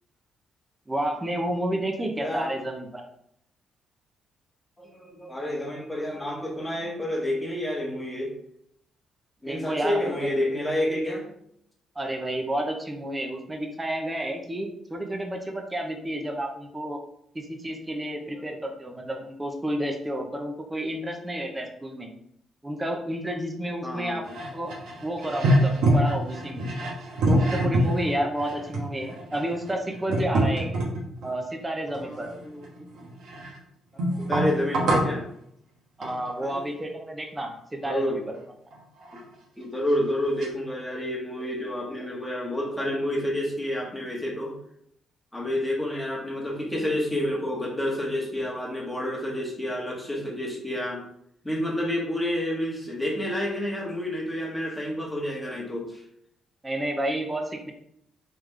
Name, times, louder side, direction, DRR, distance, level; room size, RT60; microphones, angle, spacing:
voice 1, 0.9-3.0 9.4-10.3 12.0-17.0 17.3-22.1 22.6-24.7 25.0-26.7 27.2-30.7 31.2-32.3 36.0-38.4 56.6-57.7, right 1 dB, 15° right, 2 dB, 0.7 m, -30 dB
voice 2, 2.2-2.5 4.8-8.3 9.4-11.3 18.2-18.6 23.8-24.2 32.0-32.9 33.9-35.2 36.4-36.7 37.8-38.2 39.1-39.2 39.6-44.6 45.3-51.0 51.4-56.0, left 1 dB, 10° left, -2 dB, 1.3 m, -29 dB
sound 1, 24.3-31.3 31.9-33.6 34.0-35.2 36.0-36.3 38.7-38.8 39.0-39.2 39.9-40.0 40.4-40.5, right 1 dB, 80° right, 1.1 m, -26 dB
3.5 x 3.4 x 3.2 m, 0.72 s
cardioid pair, 90°, 0 cm